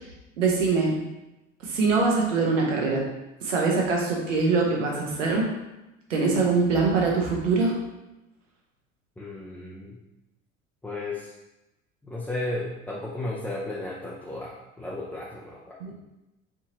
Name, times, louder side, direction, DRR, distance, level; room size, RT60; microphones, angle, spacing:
voice 1, 0.4-0.9 1.6-3.0 3.4-5.5 6.1-7.7 15.8-15.9, right 4 dB, 75° right, -1 dB, 1.0 m, -23 dB
voice 2, 9.2-10.0 10.8-11.3 12.0-15.8, left 2 dB, 5° left, -5 dB, 0.5 m, -34 dB
4.7 x 2.8 x 2.8 m, 0.98 s
figure-of-eight pair, 60°, 38 cm